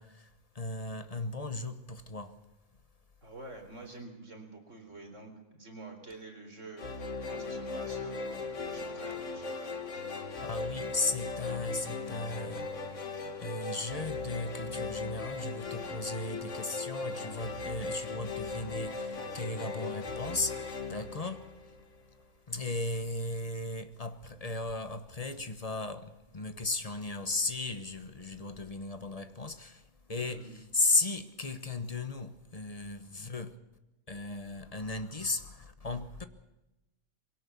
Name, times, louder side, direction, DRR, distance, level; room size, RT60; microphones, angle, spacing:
voice 1, 0.0-2.4 10.4-13.0 13.4-21.5 22.5-33.6 34.1-36.2, left 2 dB, 25° left, 1.2 m, -36 dB
voice 2, 3.2-10.1 21.0-21.4 30.2-30.5, right 2 dB, 55° right, 4.4 m, -48 dB
sound 1, 6.8-22.0, left 3 dB, 55° left, 2.0 m, -38 dB
22.5 x 17.5 x 7.1 m
omnidirectional pair, 1.5 m